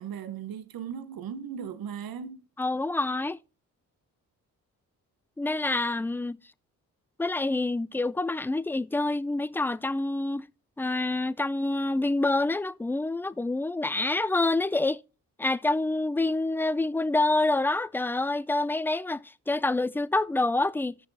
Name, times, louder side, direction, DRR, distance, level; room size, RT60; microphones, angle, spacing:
voice 1, 0.0-2.5, right 8 dB, 65° right, 1.0 m, -37 dB
voice 2, 2.6-3.4 5.4-6.4 7.2-10.5 10.8-15.0 15.4-21.0, left 2 dB, 5° left, 0.4 m, -27 dB
16.0 x 6.6 x 2.7 m
supercardioid pair, 50°, 39 cm